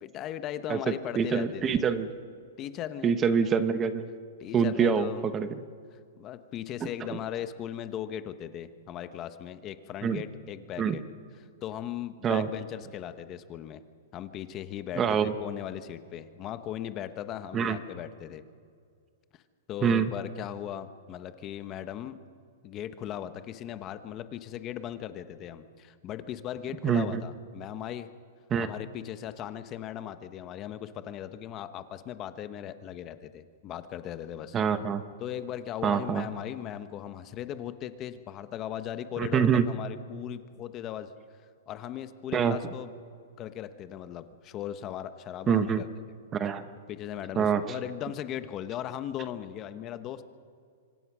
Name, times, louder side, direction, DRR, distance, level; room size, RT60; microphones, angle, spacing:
voice 1, 0.0-1.8 2.6-3.1 4.4-5.3 6.2-11.0 11.4-13.8 14.1-18.4 19.7-22.2 22.6-28.1 28.6-34.6 35.2-41.1 41.7-42.9 43.4-45.9 46.9-50.2, left 10 dB, 25° left, 11 dB, 1.0 m, -38 dB
voice 2, 0.7-2.1 3.0-4.0 4.5-5.5 6.8-6.9 10.0-10.2 10.8-11.0 12.2-12.5 15.0-15.3 17.5-17.8 19.8-20.1 26.8-27.2 28.5-28.7 34.5-35.0 35.8-36.2 39.2-39.6 42.3-42.6 45.5-45.8 46.3-46.6 47.4-47.6, right 7 dB, 15° right, 11 dB, 0.9 m, -25 dB
25.5 x 25.0 x 6.2 m, 2.2 s
hypercardioid pair, 160°, 0 cm